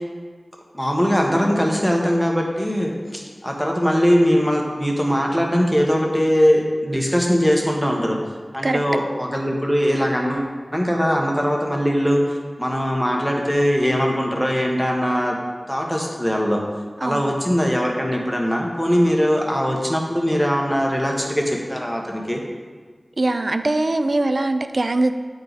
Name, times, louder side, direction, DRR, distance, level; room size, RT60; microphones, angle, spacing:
voice 1, 0.7-8.2 8.5-15.4 15.7-16.6 17.0-22.4, equal, ahead, 0 dB, 1.3 m, -21 dB
voice 2, 23.2-25.1, right 2 dB, 60° right, 9 dB, 0.4 m, -21 dB
8.7 x 4.7 x 4.1 m, 1.5 s
wide cardioid pair, 40°, 0 cm